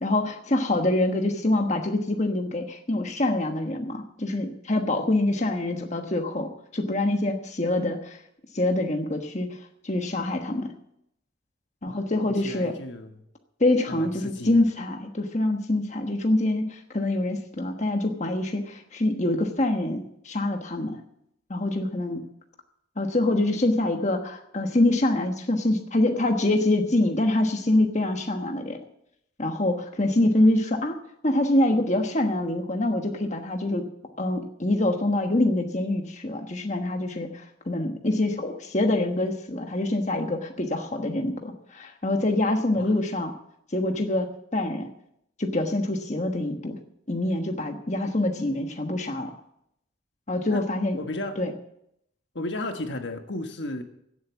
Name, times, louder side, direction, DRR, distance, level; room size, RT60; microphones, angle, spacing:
voice 1, 0.0-8.2 8.5-9.6 9.8-10.7 11.8-12.7 13.6-21.0 21.5-22.2 23.0-28.8 29.4-31.0 31.2-33.8 34.2-43.3 43.7-44.9 45.4-46.8 47.1-49.4 50.3-51.0 51.4-51.5, left 1 dB, 35° left, 4 dB, 1.3 m, -25 dB
voice 2, 12.2-13.2 13.9-14.6 42.8-42.9 50.5-50.6 51.0-51.4 52.3-53.8, left 2 dB, 65° left, 6 dB, 1.3 m, -34 dB
16.5 x 8.1 x 7.2 m, 0.75 s
head